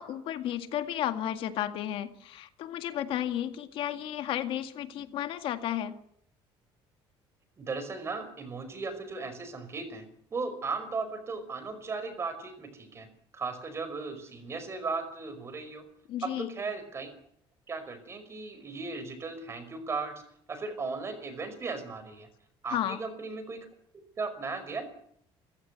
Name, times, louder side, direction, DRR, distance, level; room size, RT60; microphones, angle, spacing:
voice 1, 0.0-5.9 16.1-16.5 22.7-23.0, left 11 dB, 65° left, 8 dB, 1.9 m, -33 dB
voice 2, 7.6-10.0 10.3-13.1 13.3-15.8 16.4-17.1 17.7-20.1 20.5-22.3 22.6-23.6 24.2-24.8, right 4 dB, 25° right, 10 dB, 5.2 m, -36 dB
29.0 x 15.5 x 8.3 m, 0.70 s
cardioid pair, 145°, 10 cm